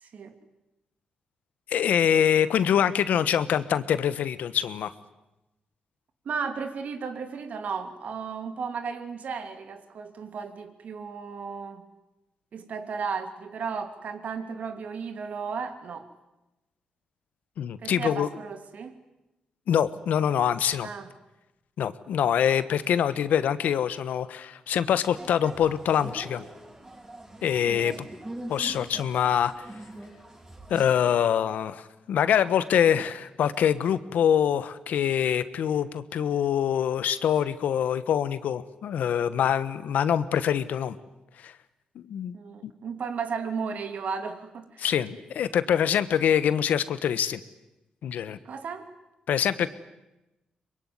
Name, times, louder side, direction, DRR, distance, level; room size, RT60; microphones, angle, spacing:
voice 1, 0.0-0.3 6.2-11.8 12.5-16.1 17.8-18.9 20.8-21.1 27.7-28.0 42.3-44.9 48.4-48.9, right 5 dB, 65° right, 8 dB, 2.7 m, -34 dB
voice 2, 1.7-4.9 17.6-18.3 19.7-20.9 21.8-26.4 27.4-27.9 28.5-29.5 30.7-40.9 41.4-41.5 41.9-42.3 42.6-42.7 44.8-47.4 48.0-48.4 49.3-49.7, left 9 dB, 80° left, 14 dB, 1.2 m, -24 dB
sound 1, 25.1-30.9, right 1 dB, 25° right, 6.7 m, -43 dB
24.0 x 22.0 x 9.7 m, 0.99 s
cardioid pair, 70°, 3 cm